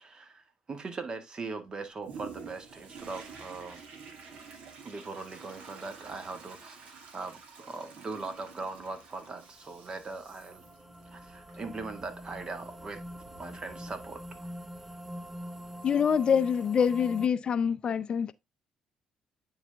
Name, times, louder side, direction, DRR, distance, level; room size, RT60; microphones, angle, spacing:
voice 1, 0.0-3.9 4.8-10.6 11.0-13.0 13.4-14.5, right 3 dB, 40° right, 1.6 m, -40 dB
Toilet flush, 2.0-14.5 15.0-15.1, right 5 dB, 70° right, 1.9 m, -50 dB
sound 1, 8.8-17.3, equal, 15° right, 1.0 m, -45 dB
voice 2, 15.8-18.3, left 7 dB, 50° left, 0.5 m, -25 dB
9.4 x 4.1 x 3.3 m
supercardioid pair, 60°, 2 cm